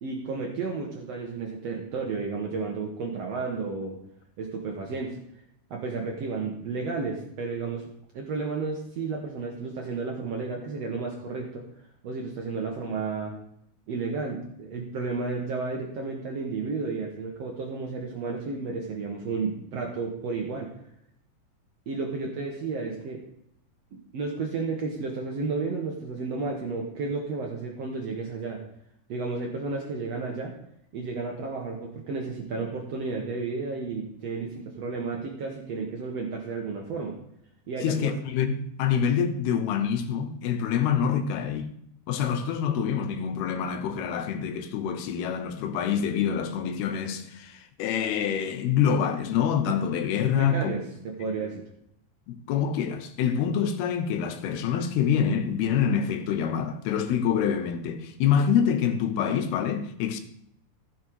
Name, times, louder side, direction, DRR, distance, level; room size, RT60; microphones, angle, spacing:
voice 1, 0.0-4.0 4.4-5.2 5.7-7.8 8.1-11.6 12.0-13.3 13.9-20.7 21.9-23.2 24.1-28.6 29.1-30.5 30.9-37.1 37.7-38.2 50.4-51.6, right 4 dB, 85° right, 1.4 m, -32 dB
voice 2, 37.8-41.7 42.1-50.8 52.3-60.2, left 7 dB, 75° left, 2.8 m, -26 dB
15.0 x 6.5 x 4.7 m
omnidirectional pair, 4.8 m